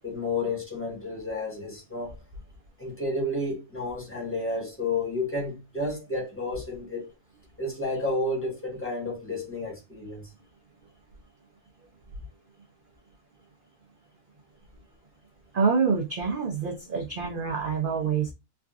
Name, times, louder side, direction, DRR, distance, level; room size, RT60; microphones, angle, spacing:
voice 1, 0.0-2.2 2.8-7.1 7.6-10.2, left 2 dB, 10° left, 1.0 m, -31 dB
voice 2, 15.5-18.3, right 5 dB, 90° right, 0.4 m, -26 dB
3.5 x 2.3 x 2.3 m
omnidirectional pair, 1.6 m